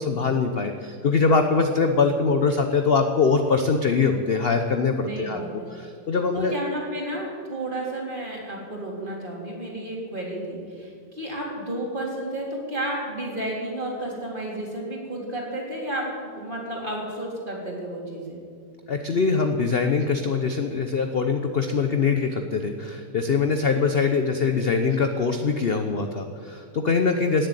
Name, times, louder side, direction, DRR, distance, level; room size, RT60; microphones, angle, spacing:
voice 1, 0.0-5.4 5.7-6.5 18.9-27.5, left 4 dB, 45° left, 6 dB, 0.8 m, -23 dB
voice 2, 5.1-5.7 6.3-18.4, right 1 dB, 30° right, -3 dB, 3.7 m, -32 dB
17.5 x 7.9 x 9.7 m, 2.1 s
omnidirectional pair, 1.8 m